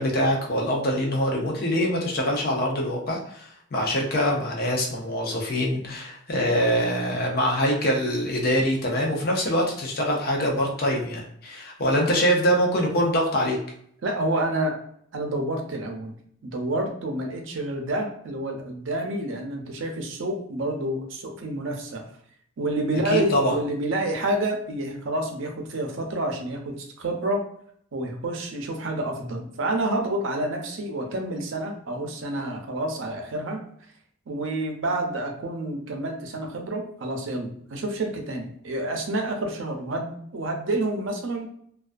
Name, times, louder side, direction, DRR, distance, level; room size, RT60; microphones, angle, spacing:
voice 1, 0.0-13.6 23.1-23.6, equal, 50° left, 0 dB, 0.5 m, -24 dB
voice 2, 14.0-14.8 15.1-16.1 16.4-22.0 22.6-27.5 27.9-33.6 34.3-41.5, right 1 dB, 75° right, 3 dB, 0.5 m, -28 dB
2.3 x 2.2 x 2.4 m, 0.66 s
head